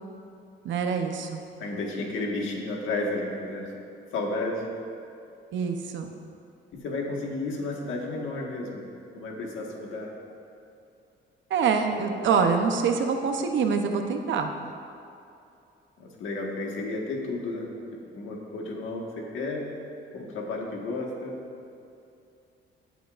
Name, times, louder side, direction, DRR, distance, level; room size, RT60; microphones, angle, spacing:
voice 1, 0.6-1.4 5.5-6.1 11.5-14.5, right 5 dB, 70° right, 5 dB, 0.8 m, -25 dB
voice 2, 1.6-3.7 4.1-4.7 6.7-8.8 9.1-10.1 11.9-12.3 16.0-19.7 20.1-21.4, left 2 dB, 80° left, -1 dB, 1.6 m, -32 dB
16.0 x 8.3 x 2.5 m, 2.6 s
cardioid pair, 140°, 20 cm